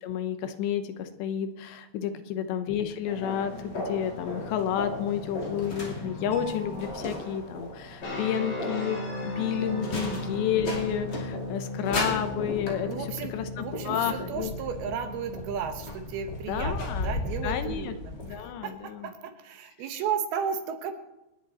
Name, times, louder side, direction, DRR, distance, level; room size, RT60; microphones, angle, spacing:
voice 1, 0.0-12.9 13.3-14.5 16.5-17.1 17.4-17.9 18.2-19.1, left 9 dB, 80° left, 9 dB, 3.2 m, -31 dB
sound 1, 3.0-18.4, left 2 dB, 30° left, 2.5 m, -36 dB
sound 2, 8.0-16.9, left 2 dB, 65° left, 7.4 m, -37 dB
voice 2, 9.7-10.2 12.9-20.9, right 7 dB, 70° right, 6 dB, 2.9 m, -34 dB
26.5 x 10.5 x 4.3 m, 0.96 s
omnidirectional pair, 5.0 m